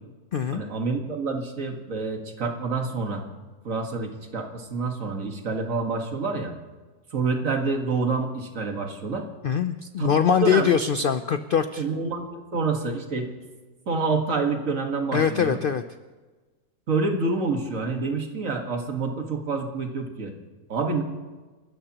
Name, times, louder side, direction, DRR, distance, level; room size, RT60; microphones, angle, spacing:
voice 1, 0.5-3.2 3.6-6.5 7.1-9.3 10.0-10.7 11.8-13.3 13.9-15.6 16.9-20.3 20.7-21.0, right 4 dB, 60° right, 3 dB, 2.0 m, -27 dB
voice 2, 9.4-11.8 15.1-15.8, left 7 dB, 85° left, 10 dB, 0.4 m, -22 dB
29.5 x 13.5 x 3.0 m, 1.3 s
omnidirectional pair, 1.6 m